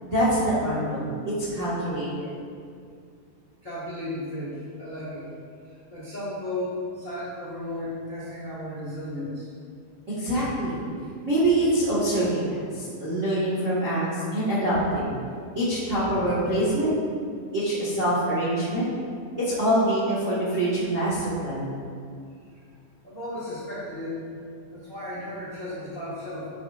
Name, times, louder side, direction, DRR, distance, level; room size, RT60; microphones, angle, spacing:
voice 1, 0.0-2.3 10.1-10.8 11.2-15.2 15.5-16.9 17.5-18.9 19.4-21.8, right 1 dB, 45° right, -9 dB, 0.9 m, -25 dB
voice 2, 3.6-5.3 5.7-9.5 23.0-24.4 24.7-26.5, left 1 dB, 55° left, -9 dB, 0.9 m, -34 dB
10.5 x 7.3 x 2.5 m, 2.3 s
omnidirectional pair, 4.1 m